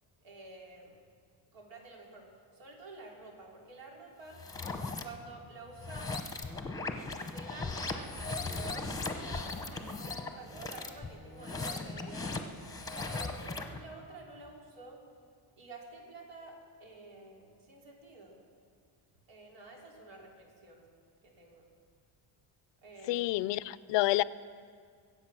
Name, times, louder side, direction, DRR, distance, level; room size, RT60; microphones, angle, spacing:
voice 1, 0.2-1.0 1.5-4.4 5.0-6.2 7.2-12.4 12.8-15.0 15.6-18.4 19.3-20.9 21.2-21.7 22.8-23.4, right 3 dB, 80° right, -1 dB, 3.4 m, -50 dB
Fast reverse vortex, 4.3-5.0 5.7-13.8, left 3 dB, 10° left, 0.8 m, -38 dB
voice 2, 23.1-24.2, left 17 dB, 80° left, 18 dB, 0.5 m, -28 dB
23.0 x 8.2 x 6.1 m, 2.1 s
cardioid pair, 155°, 43 cm